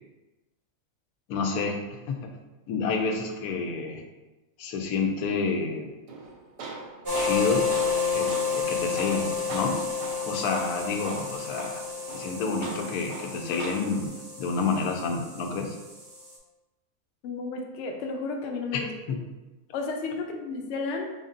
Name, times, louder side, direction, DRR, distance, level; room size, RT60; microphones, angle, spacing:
voice 1, 1.3-2.2 2.7-4.0 4.6-5.9 7.1-7.7 8.1-9.8 10.2-11.8 12.1-15.8 18.7-19.2, left 4 dB, 90° left, 3 dB, 1.1 m, -29 dB
Tools, 6.1-14.1, right 3 dB, 65° right, 0.7 m, -41 dB
sound 1, 7.1-16.4, left 5 dB, 35° right, 0.3 m, -31 dB
voice 2, 17.2-18.9 19.7-21.1, left 3 dB, 65° left, 3 dB, 0.8 m, -32 dB
4.0 x 3.5 x 2.5 m, 1.1 s
omnidirectional pair, 1.6 m